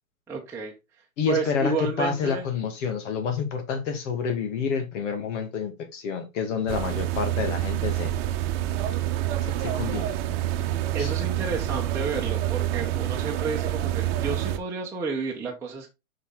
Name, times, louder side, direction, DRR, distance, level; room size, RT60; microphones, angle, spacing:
voice 1, 0.3-0.7 1.3-2.5 10.9-15.9, right 4 dB, 5° right, 1.1 m, -31 dB
voice 2, 1.2-8.1 9.4-10.1 11.0-11.1, left 6 dB, 60° left, 2.0 m, -28 dB
sound 1, 6.7-14.6, right 13 dB, 45° right, 1.0 m, -27 dB
5.7 x 5.7 x 3.8 m
hypercardioid pair, 135°, 41 cm